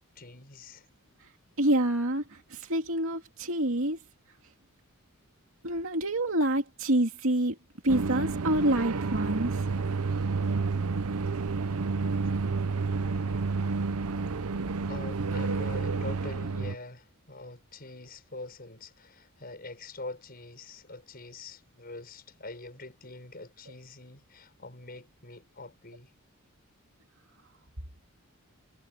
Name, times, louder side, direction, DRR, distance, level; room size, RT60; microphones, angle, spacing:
voice 1, 0.1-0.9 11.7-11.8 13.0-13.5 14.9-26.1, left 2 dB, 45° left, 6.4 m, -44 dB
voice 2, 1.6-4.0 5.6-7.6 7.8-9.7, right 1 dB, 65° right, 2.7 m, -27 dB
sound 1, 7.9-16.7, right 4 dB, 80° right, 0.7 m, -30 dB
head